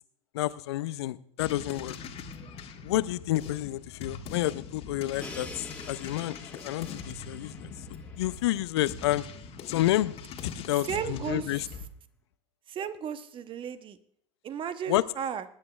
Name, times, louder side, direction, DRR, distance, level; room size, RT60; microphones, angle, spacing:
voice 1, 0.3-1.9 2.8-7.7 8.2-9.2 9.7-10.1 10.4-11.7 14.9-15.0, left 15 dB, 65° left, 17 dB, 0.5 m, -29 dB
sound 1, 1.4-11.9, left 5 dB, 40° left, 1.6 m, -42 dB
Crash cymbal, 5.2-9.0, left 2 dB, 10° left, 1.7 m, -47 dB
voice 2, 10.9-11.5 12.7-14.0 14.4-15.4, right 8 dB, 35° right, 12 dB, 1.0 m, -34 dB
21.5 x 10.5 x 2.4 m, 0.66 s
figure-of-eight pair, 75°, 15 cm